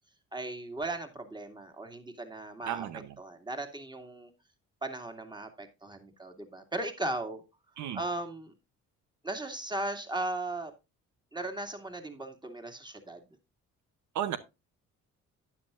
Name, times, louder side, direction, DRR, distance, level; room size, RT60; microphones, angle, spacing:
voice 1, 0.3-2.9 3.2-4.3 4.8-7.4 7.9-8.5 9.2-10.7 11.3-13.2, right 2 dB, 15° right, 2.4 m, -37 dB
voice 2, 2.7-3.1 7.8-8.0 14.1-14.4, right 10 dB, 75° right, 0.9 m, -33 dB
11.5 x 9.8 x 2.5 m
cardioid pair, 90°, 30 cm